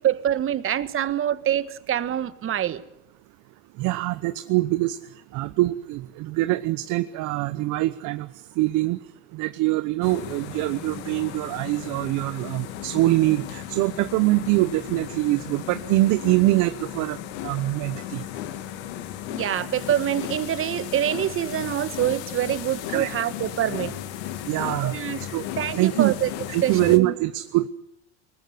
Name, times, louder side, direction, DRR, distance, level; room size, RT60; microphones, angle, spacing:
voice 1, 0.0-2.8 19.3-23.9 24.8-25.2 25.6-26.3 26.6-27.1, right 11 dB, 40° right, 14 dB, 1.6 m, -25 dB
voice 2, 3.8-5.0 5.3-8.3 8.6-9.0 9.3-17.2 17.4-18.2 22.9-23.1 24.5-25.0 25.3-25.4 25.7-26.1 26.5-27.7, right 18 dB, 60° right, 13 dB, 1.0 m, -23 dB
sound 1, 10.0-27.0, left 12 dB, 80° left, 2.2 m, -35 dB
21.5 x 19.5 x 9.4 m, 0.77 s
supercardioid pair, 95°, 34 cm